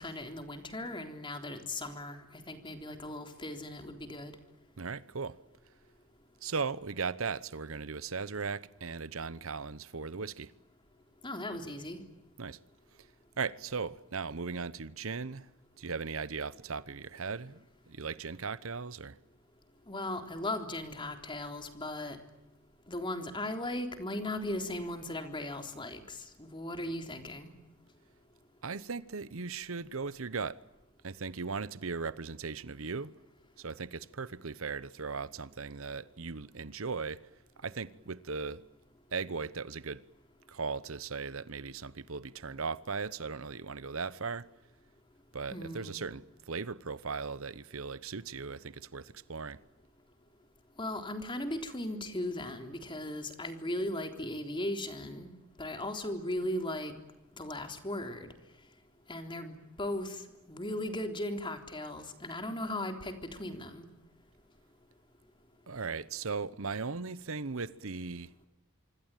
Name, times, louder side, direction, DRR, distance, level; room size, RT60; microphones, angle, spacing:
voice 1, 0.0-2.2 2.5-4.3 11.2-12.0 19.9-22.2 22.9-27.5 45.5-46.0 50.8-55.3 55.6-56.9 57.4-58.3 59.1-63.9, left 1 dB, 20° left, 3.6 m, -37 dB
voice 2, 4.8-5.4 6.4-10.5 12.4-12.6 13.4-15.5 15.8-19.2 28.6-30.6 31.0-33.1 33.6-37.2 37.6-38.6 39.1-40.0 40.5-44.4 45.3-49.6 65.7-68.3, right 4 dB, 70° right, 0.9 m, -38 dB
26.5 x 24.5 x 9.2 m
head